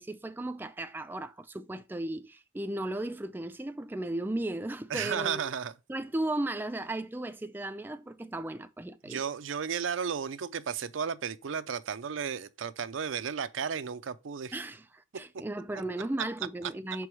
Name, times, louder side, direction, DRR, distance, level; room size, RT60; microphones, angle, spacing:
voice 1, 0.0-5.4 5.9-9.2 14.5-17.1, right 1 dB, 10° right, 0.3 m, -35 dB
voice 2, 4.9-5.7 9.1-14.5, right 7 dB, 80° right, 0.5 m, -33 dB
6.1 x 4.7 x 4.7 m
head